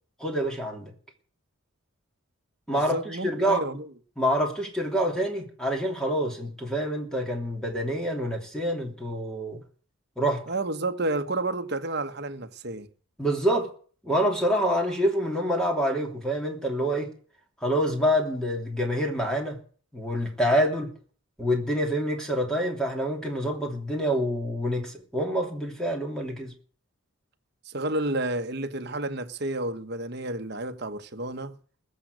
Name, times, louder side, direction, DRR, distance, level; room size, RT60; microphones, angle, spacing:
voice 1, 0.2-0.9 2.7-3.6 4.2-9.6 10.2-10.4 13.2-13.7 14.0-17.1 17.6-19.6 19.9-20.9 21.4-26.5, equal, 5° left, 3.0 m, -26 dB
voice 2, 2.7-3.9 10.5-12.9 27.7-31.5, right 2 dB, 50° right, 1.2 m, -31 dB
21.0 x 7.6 x 6.3 m
head